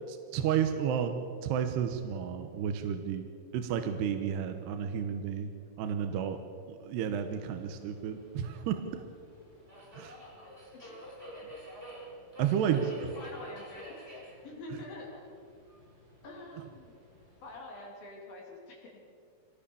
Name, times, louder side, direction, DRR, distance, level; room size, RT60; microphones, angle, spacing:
voice 1, 0.1-3.3 3.5-5.5 5.8-6.4 6.7-9.0 9.9-10.2 12.4-12.9 16.6-16.7, right 8 dB, 70° right, 7 dB, 2.8 m, -32 dB
Subway metro underground, 7.0-17.6, equal, 15° right, 6.6 m, -50 dB
voice 2, 10.7-11.0 12.6-15.2 16.2-16.9 17.4-19.0, left 2 dB, 50° left, -1 dB, 4.3 m, -46 dB
25.5 x 19.0 x 7.1 m, 2.4 s
omnidirectional pair, 5.6 m